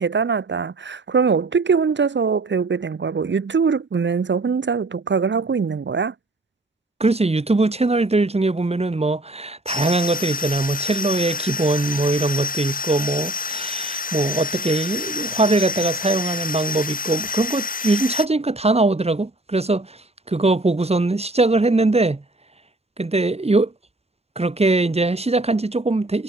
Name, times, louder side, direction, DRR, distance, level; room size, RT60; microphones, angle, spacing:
voice 1, 0.0-6.1, right 5 dB, 80° right, 2.6 m, -22 dB
voice 2, 7.0-22.2 23.0-23.7 24.4-26.2, right 2 dB, 35° right, 2.5 m, -21 dB
sound 1, 9.7-18.3, left 5 dB, 50° left, 0.9 m, -28 dB
wide cardioid pair, 65°, 18 cm